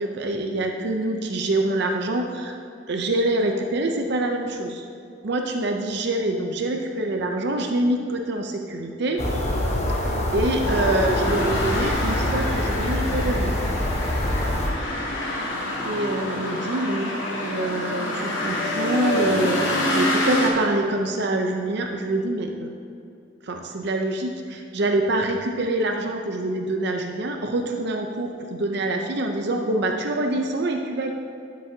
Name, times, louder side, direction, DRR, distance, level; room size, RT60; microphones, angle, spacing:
voice 1, 0.0-2.6 2.9-4.8 5.2-9.2 10.0-13.6 15.8-22.7 23.5-31.1, right 2 dB, 60° right, 3 dB, 0.6 m, -25 dB
sound 1, 9.2-14.7, left 1 dB, 35° left, 1.0 m, -25 dB
sound 2, 10.6-20.5, left 1 dB, 80° left, 1.6 m, -27 dB
12.0 x 6.2 x 2.8 m, 2.6 s
head